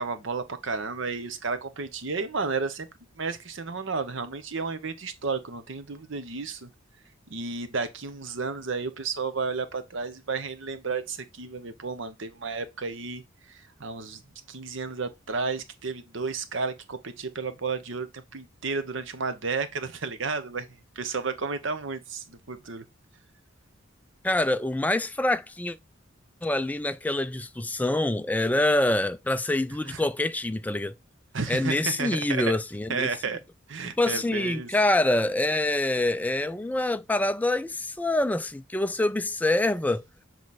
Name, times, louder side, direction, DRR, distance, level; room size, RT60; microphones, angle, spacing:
voice 1, 0.0-2.9 3.2-6.7 7.3-13.2 13.5-14.2 14.5-20.7 21.0-22.8 29.9-30.0 31.3-32.6 32.9-33.4 33.7-34.7, right 4 dB, 65° right, 0.9 m, -32 dB
voice 2, 24.2-25.8 26.4-30.9 31.5-33.1 33.8-40.0, left 2 dB, 10° left, 0.3 m, -26 dB
7.4 x 3.1 x 4.1 m
head